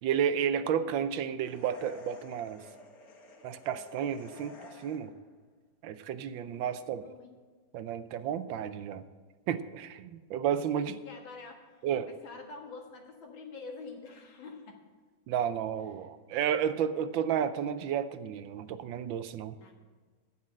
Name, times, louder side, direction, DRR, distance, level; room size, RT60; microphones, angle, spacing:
voice 1, 0.0-2.6 3.4-4.6 4.8-5.1 5.8-7.1 7.7-9.0 9.5-11.0 11.8-12.1 15.3-19.5, right 8 dB, 85° right, 12 dB, 1.5 m, -32 dB
sound 1, 1.4-5.3, left 2 dB, 50° left, 1.7 m, -51 dB
voice 2, 6.1-7.3 10.7-11.7 12.1-14.8 16.0-16.1 19.6-19.7, left 4 dB, 90° left, 2 dB, 2.4 m, -47 dB
9.7 x 8.8 x 7.6 m, 1.4 s
omnidirectional pair, 2.1 m